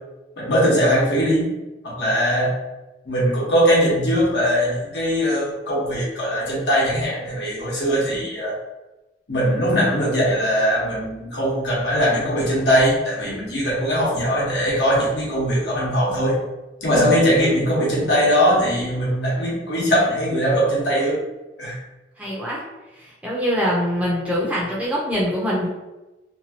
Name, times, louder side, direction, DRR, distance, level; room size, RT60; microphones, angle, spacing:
voice 1, 0.4-1.5 1.8-2.6 3.0-8.6 9.3-16.4 16.8-21.2 21.6-21.8, equal, 70° left, -6 dB, 1.1 m, -20 dB
voice 2, 22.2-22.6 22.9-25.7, equal, 5° right, -6 dB, 0.6 m, -24 dB
2.8 x 2.4 x 2.8 m, 1.0 s
head